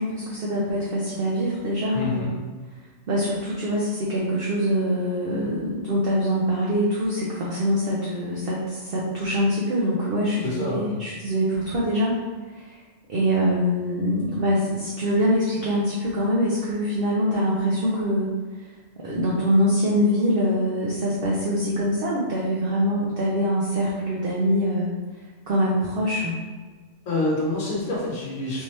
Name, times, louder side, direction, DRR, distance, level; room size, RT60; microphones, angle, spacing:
voice 1, 0.0-2.3 3.1-12.2 12.5-12.8 13.1-18.3 19.0-24.9 25.5-26.3, equal, 55° right, -5 dB, 0.7 m, -24 dB
voice 2, 1.9-2.3 10.4-10.9 27.1-28.6, left 2 dB, 80° left, -6 dB, 1.2 m, -27 dB
3.5 x 2.7 x 3.1 m, 1.4 s
omnidirectional pair, 1.3 m